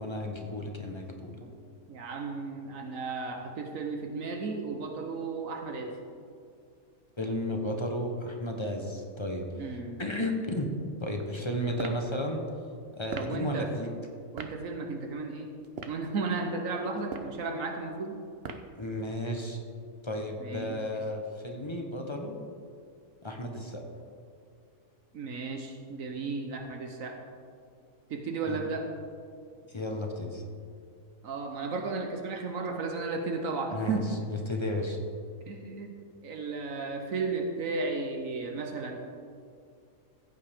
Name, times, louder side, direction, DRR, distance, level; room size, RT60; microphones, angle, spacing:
voice 1, 0.0-1.3 7.2-9.4 10.0-10.7 11.0-12.4 12.9-13.9 18.8-19.6 20.0-22.3 23.2-23.8 28.5-28.6 29.7-30.4 33.7-34.0 34.3-35.0, left 1 dB, 25° left, 2 dB, 0.9 m, -33 dB
voice 2, 1.9-6.0 9.6-10.0 13.1-13.7 14.3-15.6 15.9-18.2 20.4-20.8 25.1-27.2 28.1-28.9 31.2-34.2 35.5-35.9 36.2-39.0, right 3 dB, 75° right, 4 dB, 1.3 m, -34 dB
sound 1, 11.7-12.0 13.1-13.4 14.4-14.6 15.6-16.0 17.0-17.4 18.4-18.8, right 5 dB, 55° right, 0.8 m, -39 dB
15.0 x 8.4 x 3.6 m, 2.3 s
omnidirectional pair, 1.4 m